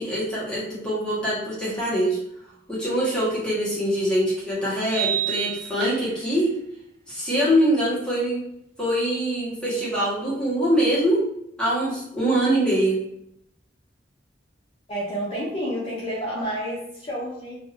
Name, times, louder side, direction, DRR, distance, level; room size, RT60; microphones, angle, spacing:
voice 1, 0.0-2.2 2.7-6.5 7.1-8.4 8.8-11.2 11.6-13.0, right 1 dB, 5° left, -9 dB, 1.2 m, -23 dB
sound 1, 4.9-6.3, right 12 dB, 60° right, 0.3 m, -29 dB
voice 2, 14.9-17.5, equal, 35° left, -7 dB, 0.7 m, -29 dB
2.7 x 2.3 x 3.3 m, 0.76 s
head